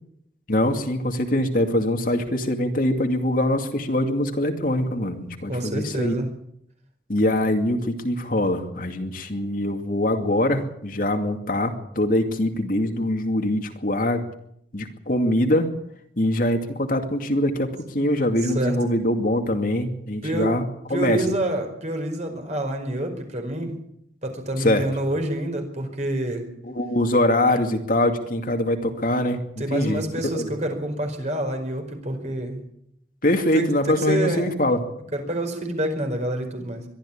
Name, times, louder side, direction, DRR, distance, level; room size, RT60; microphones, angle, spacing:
voice 1, 0.5-6.1 7.1-14.2 14.7-15.7 16.2-20.6 20.9-21.2 24.6-24.9 26.6-29.4 29.7-30.0 30.3-30.5 33.2-34.8, left 1 dB, 50° left, 5 dB, 2.5 m, -23 dB
voice 2, 5.5-6.3 18.4-18.8 20.2-20.5 20.9-23.7 24.2-26.5 29.6-32.6 33.5-34.5 35.1-36.9, right 1 dB, 40° right, 5 dB, 4.9 m, -27 dB
23.0 x 13.5 x 8.7 m, 0.72 s
head